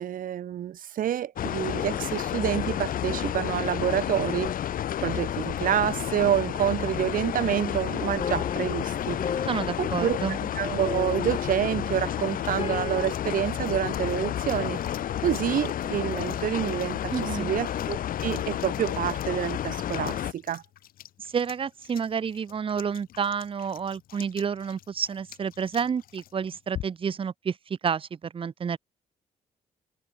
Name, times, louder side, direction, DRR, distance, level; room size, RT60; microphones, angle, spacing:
voice 1, 0.0-4.5 5.0-9.2 9.8-10.2 10.5-14.8 15.2-20.6, right 11 dB, 70° right, 2.4 m, -28 dB
sound 1, 1.4-20.3, left 11 dB, 75° left, 2.7 m, -31 dB
sound 2, 8.2-13.2, left 6 dB, 40° left, 2.4 m, -36 dB
voice 2, 9.5-10.4 17.1-17.5 21.2-28.8, right 6 dB, 40° right, 1.0 m, -30 dB
sound 3, 11.7-27.2, left 12 dB, 90° left, 2.1 m, -48 dB
cardioid pair, 120°, 15 cm